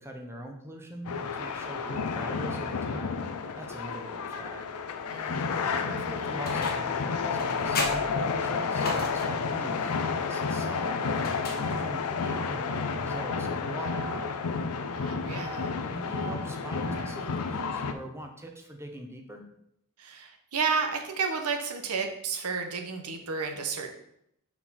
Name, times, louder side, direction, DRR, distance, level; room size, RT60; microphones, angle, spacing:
voice 1, 0.0-3.2 3.5-4.7 5.6-9.9 10.3-14.3 15.3-19.5, right 1 dB, 10° right, 2 dB, 0.8 m, -42 dB
sound 1, 1.0-17.9, left 5 dB, 90° left, 0.5 m, -31 dB
voice 2, 5.1-5.7 14.9-15.7 20.0-23.9, right 5 dB, 85° right, 4 dB, 0.9 m, -32 dB
sound 2, 6.4-7.0 7.4-9.5 11.1-12.1, left 3 dB, 45° left, 1.1 m, -36 dB
4.6 x 4.4 x 5.5 m, 0.75 s
head